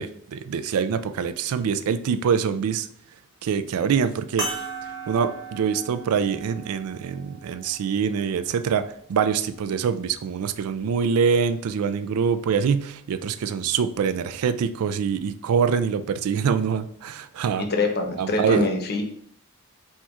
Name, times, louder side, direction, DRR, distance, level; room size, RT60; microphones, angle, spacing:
voice 1, 0.0-2.9 3.4-4.6 5.1-8.8 9.1-17.7 18.2-18.7, right 6 dB, 70° right, 10 dB, 0.3 m, -24 dB
sound 1, 4.4-9.2 10.0-10.1 12.2-12.3, right 3 dB, 20° right, 1.2 m, -37 dB
voice 2, 17.6-19.0, left 3 dB, 45° left, 4 dB, 0.7 m, -24 dB
4.4 x 2.3 x 4.3 m, 0.65 s
head